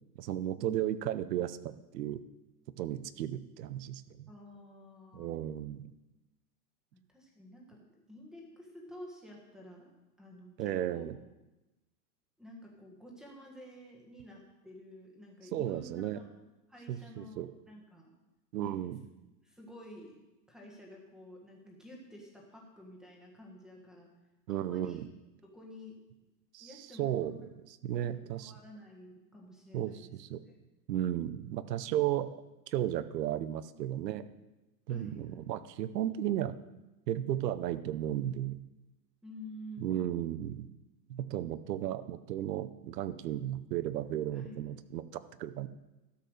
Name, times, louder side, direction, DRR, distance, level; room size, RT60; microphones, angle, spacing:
voice 1, 0.2-2.2 2.8-4.3 5.1-5.9 10.6-11.2 15.5-16.2 16.9-17.5 18.5-19.0 24.5-25.1 26.5-28.5 29.7-30.4 30.9-34.3 34.9-36.5 37.1-38.6 39.8-40.7 41.1-45.7, right 12 dB, 75° right, 14 dB, 0.8 m, -34 dB
voice 2, 4.3-5.4 6.9-7.8 8.1-9.9 10.2-11.0 12.4-16.2 16.7-18.1 18.6-18.8 19.4-20.2 20.5-24.1 24.5-25.0 25.4-26.0 26.6-27.4 27.9-30.1 30.5-30.6 34.9-35.5 39.2-40.2 44.3-44.9, left 1 dB, ahead, -1 dB, 1.6 m, -51 dB
13.0 x 5.6 x 6.5 m, 1.0 s
supercardioid pair, 150°, 49 cm